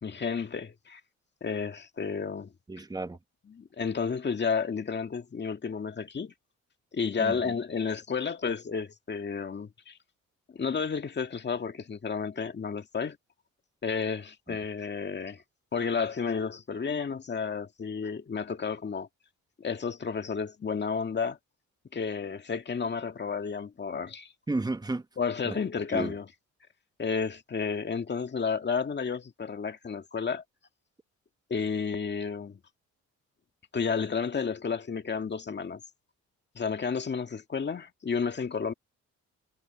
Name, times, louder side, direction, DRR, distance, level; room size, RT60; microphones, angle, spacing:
voice 1, 0.0-1.0 1.4-2.5 3.5-6.3 6.9-10.0 10.5-13.2 13.8-15.4 15.7-19.1 19.6-21.4 21.9-24.3 25.2-26.2 27.0-30.4 31.5-32.6 33.7-35.8 36.6-38.7, left 5 dB, 35° left, 1.9 m, -31 dB
voice 2, 2.7-3.2 7.2-7.5 14.5-14.6 24.5-25.0 25.4-25.6 25.9-26.1, right 2 dB, 15° right, 1.2 m, -33 dB
cardioid pair, 90°, 30 cm